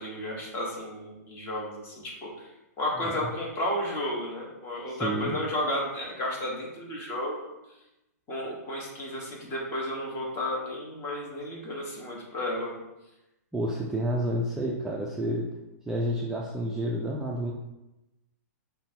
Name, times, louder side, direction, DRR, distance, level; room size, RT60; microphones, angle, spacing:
voice 1, 0.0-2.5 2.8-7.5 8.3-12.8, left 1 dB, 25° left, -3 dB, 1.2 m, -33 dB
voice 2, 4.9-5.4 13.5-15.5 15.9-17.5, equal, 5° right, -3 dB, 0.3 m, -30 dB
5.4 x 2.2 x 2.8 m, 0.96 s
hypercardioid pair, 130°, 9 cm